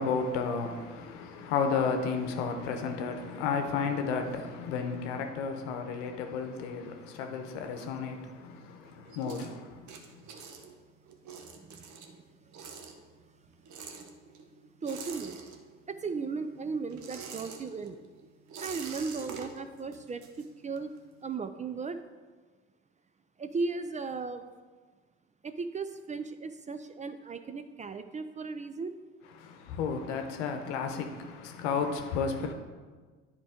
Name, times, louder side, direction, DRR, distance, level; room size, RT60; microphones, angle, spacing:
voice 1, 0.0-9.8 29.4-32.5, left 5 dB, 75° left, 0.9 m, -32 dB
sound 1, 6.9-8.5 8.8-16.0 16.3-21.0, right 5 dB, 55° right, 1.0 m, -46 dB
voice 2, 11.5-12.3 14.8-15.4 15.9-18.0 18.6-20.9 21.2-22.0 23.4-24.5 25.4-28.9, right 4 dB, 20° right, 0.4 m, -36 dB
9.9 x 4.7 x 3.6 m
hypercardioid pair, 60°, 35 cm